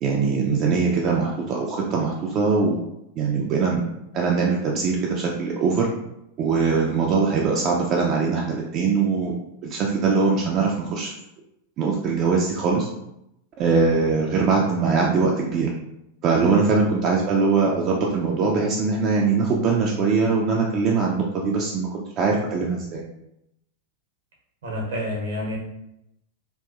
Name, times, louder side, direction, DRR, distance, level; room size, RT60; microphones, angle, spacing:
voice 1, 0.0-2.8 3.2-3.8 4.1-5.9 6.4-9.3 9.6-11.1 11.8-12.9 13.6-15.7 16.2-23.0, right 4 dB, 35° right, -2 dB, 0.3 m, -22 dB
voice 2, 16.4-16.9 24.6-25.6, equal, 65° right, -2 dB, 0.6 m, -29 dB
2.7 x 2.2 x 2.4 m, 0.84 s
figure-of-eight pair, 90°, 0 cm